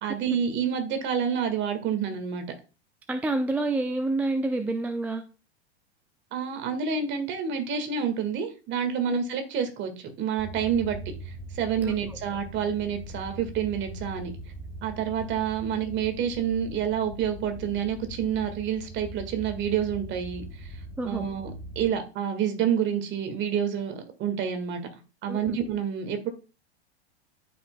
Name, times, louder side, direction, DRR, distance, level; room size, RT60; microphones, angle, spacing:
voice 1, 0.0-2.4 6.3-11.0 11.2-14.3 14.8-20.7 21.0-21.5 21.7-24.8 25.2-26.3, right 8 dB, 35° right, 7 dB, 1.7 m, -28 dB
voice 2, 3.1-5.2 9.1-9.2 11.8-11.9 21.0-21.3 25.3-25.6, right 2 dB, 5° right, 7 dB, 0.4 m, -28 dB
sound 1, 10.4-21.9, equal, 20° left, 2.5 m, -41 dB
13.0 x 5.4 x 2.2 m, 0.33 s
hypercardioid pair, 100°, 33 cm